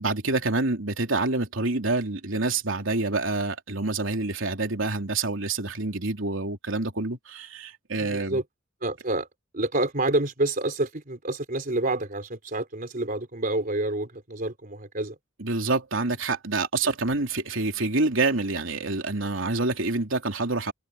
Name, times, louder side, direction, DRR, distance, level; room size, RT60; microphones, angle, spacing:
voice 1, 0.0-8.4 15.4-20.7, right 3 dB, 90° right, 3.1 m, -27 dB
voice 2, 8.0-8.4 8.8-9.3 9.5-15.2, right 2 dB, 45° right, 3.9 m, -28 dB
head